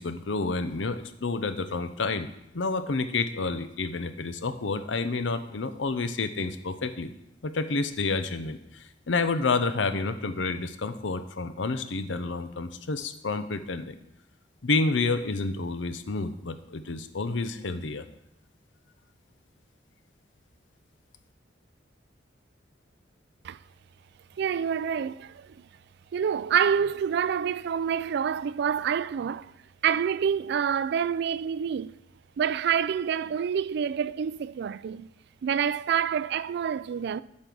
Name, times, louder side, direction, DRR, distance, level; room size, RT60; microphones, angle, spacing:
voice 1, 0.0-2.3 2.5-7.1 7.4-14.0 14.6-18.0, left 3 dB, 85° left, 0.7 m, -29 dB
voice 2, 24.4-25.7 26.1-29.5 29.8-32.0 32.4-35.1 35.4-37.2, right 7 dB, 65° right, 0.3 m, -27 dB
8.5 x 6.6 x 6.0 m
head